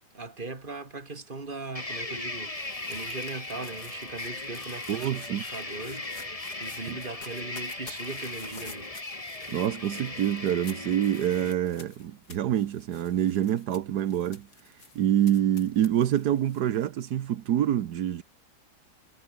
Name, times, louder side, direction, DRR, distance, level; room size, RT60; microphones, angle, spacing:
voice 1, 0.1-8.9, right 3 dB, 30° right, 2.7 m, -39 dB
sound 1, 1.7-11.5, left 2 dB, 20° left, 2.3 m, -38 dB
sound 2, 1.8-16.9, left 4 dB, 75° left, 3.8 m, -50 dB
voice 2, 4.9-5.4 6.7-7.0 9.5-14.5 14.9-18.2, right 11 dB, 80° right, 1.5 m, -26 dB
omnidirectional pair, 1.7 m